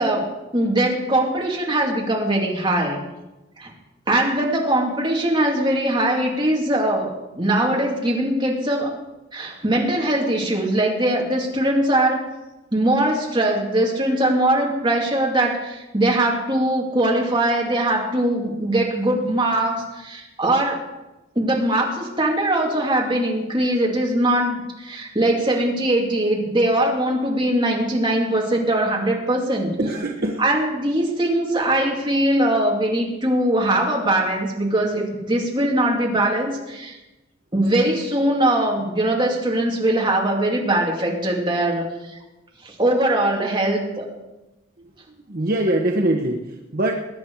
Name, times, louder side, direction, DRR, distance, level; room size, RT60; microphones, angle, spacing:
voice 1, 0.0-3.0 3.6-3.7 4.1-8.9 9.3-12.2 12.7-20.8 21.4-29.8 30.4-36.9 37.5-41.9 42.6-44.0, right 1 dB, 25° right, -2 dB, 2.6 m, -21 dB
voice 2, 29.8-30.4 44.8-46.9, right 1 dB, 45° right, 1 dB, 1.1 m, -23 dB
21.0 x 9.5 x 4.8 m, 1.0 s
head